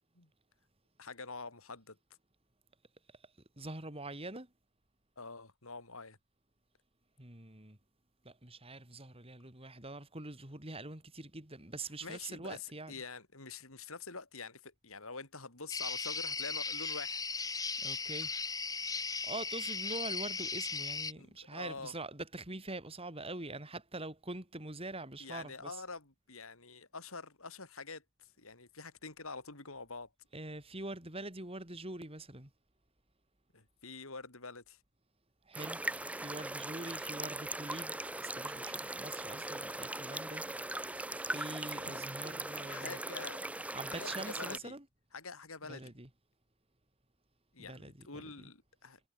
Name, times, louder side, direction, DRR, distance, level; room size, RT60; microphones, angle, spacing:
voice 1, 1.0-2.0 5.2-6.2 12.0-17.2 21.2-21.9 25.2-30.1 33.5-34.8 41.3-41.7 42.5-44.8 45.1-46.0 47.5-49.0, left 4 dB, 70° left, 4.5 m, -46 dB
voice 2, 3.6-4.5 7.2-7.8 8.2-12.9 17.8-18.3 19.0-25.8 30.3-32.5 35.5-35.8 36.1-40.4 40.7-43.0 43.7-44.8 45.6-46.1 47.6-48.5, right 2 dB, 25° right, 4.0 m, -44 dB
sound 1, 15.7-21.1, left 4 dB, 15° left, 1.9 m, -37 dB
sound 2, 35.5-44.6, right 2 dB, 5° right, 0.7 m, -40 dB
head